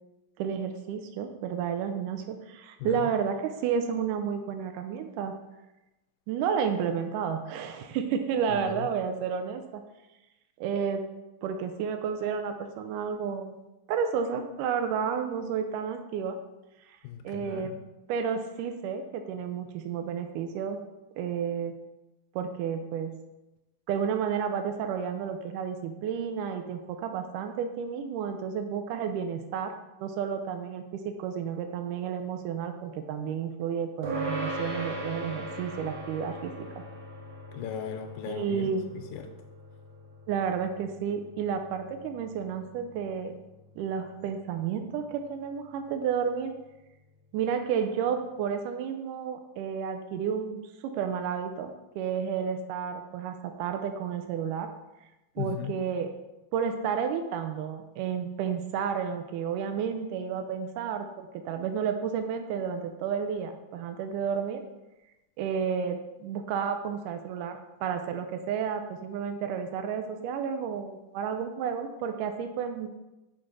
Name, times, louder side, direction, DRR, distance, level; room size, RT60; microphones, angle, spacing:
voice 1, 0.4-5.3 6.3-9.8 10.6-11.0 11.4-13.6 13.9-16.4 17.2-17.7 18.1-20.8 21.2-21.7 22.4-23.1 23.9-29.7 30.0-30.8 31.2-36.8 38.3-38.8 40.3-43.3 43.8-46.5 47.3-54.7 55.4-56.1 56.5-64.6 65.4-72.9, right 7 dB, 80° right, 6 dB, 2.1 m, -31 dB
voice 2, 2.8-3.1 8.5-8.9 17.0-17.8 37.5-39.3 55.4-55.8, left 8 dB, 80° left, 5 dB, 2.0 m, -37 dB
sound 1, 34.0-43.7, right 1 dB, 55° right, 1.4 m, -39 dB
5.6 x 5.3 x 6.0 m, 0.99 s
omnidirectional pair, 4.0 m